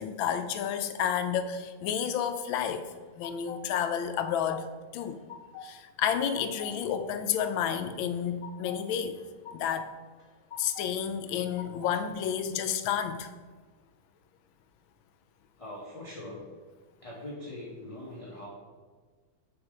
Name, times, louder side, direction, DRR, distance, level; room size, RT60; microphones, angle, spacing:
voice 1, 0.0-2.9 3.2-5.2 5.6-9.2 9.5-9.9 10.6-13.3, left 8 dB, 85° left, 10 dB, 1.4 m, -30 dB
sound 1, 2.7-3.6 4.0-4.7 5.0-5.7 6.0-6.7 7.1-7.8 8.1-8.8 9.2-9.8 10.2-10.9 11.3-12.0, left 6 dB, 55° left, 0.9 m, -45 dB
voice 2, 15.6-16.4 17.0-18.5, left 1 dB, 20° left, -5 dB, 1.0 m, -42 dB
7.0 x 4.7 x 6.5 m, 1.4 s
omnidirectional pair, 2.1 m